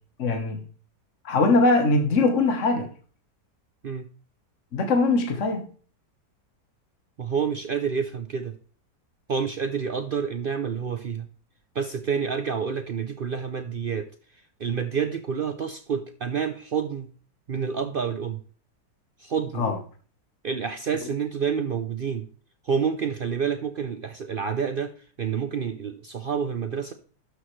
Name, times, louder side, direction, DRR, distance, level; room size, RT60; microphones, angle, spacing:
voice 1, 0.2-0.6 1.2-2.9 4.7-5.7 19.6-19.8, left 3 dB, 45° left, 4 dB, 1.5 m, -21 dB
voice 2, 7.2-8.5 9.3-11.3 11.7-14.1 14.6-17.1 17.5-18.4 19.2-19.7 20.4-22.3 22.6-26.9, right 6 dB, 75° right, 7 dB, 0.5 m, -28 dB
12.5 x 6.5 x 3.2 m, 0.41 s
omnidirectional pair, 1.8 m